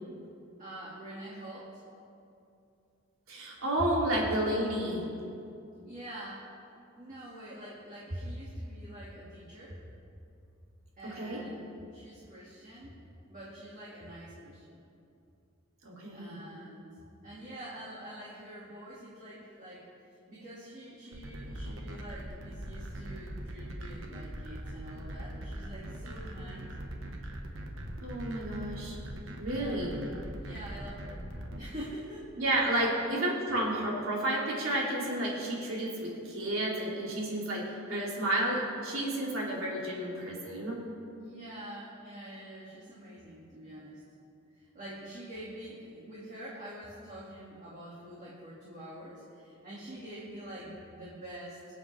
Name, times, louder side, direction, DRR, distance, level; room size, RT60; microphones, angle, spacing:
voice 1, 0.6-1.8 5.8-6.5 7.0-9.8 11.0-11.6 11.9-12.9 13.3-14.9 16.1-16.9 17.2-19.9 20.3-26.7 29.5-31.3 31.6-32.4 32.9-33.1 41.2-44.0 44.6-51.6, right 1 dB, 35° right, -7 dB, 2.2 m, -46 dB
voice 2, 3.3-5.0 11.0-11.4 15.8-16.4 28.0-29.0 29.4-30.0 32.4-40.8, right 1 dB, 85° right, -4 dB, 2.8 m, -31 dB
sound 1, 21.1-31.6, right 1 dB, 65° right, 1.3 m, -41 dB
23.5 x 7.9 x 3.4 m, 2.6 s
head